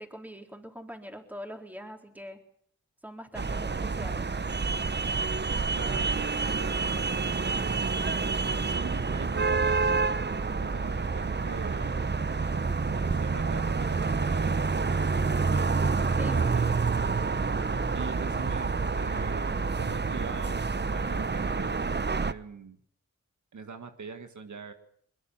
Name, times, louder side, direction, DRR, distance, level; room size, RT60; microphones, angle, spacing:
voice 1, 0.0-2.4 3.0-4.3 16.2-16.8, equal, 5° right, 3 dB, 4.1 m, -43 dB
sound 1, 3.3-22.3, right 4 dB, 35° right, 0.9 m, -28 dB
voice 2, 5.7-7.8 8.5-9.8 10.5-12.0 12.8-15.1 15.4-16.7 17.9-19.5 19.8-20.6 20.9-21.8 22.2-22.8 23.5-24.7, right 4 dB, 85° right, 7 dB, 1.8 m, -43 dB
21.5 x 21.5 x 7.4 m, 0.66 s
cardioid pair, 50°, 29 cm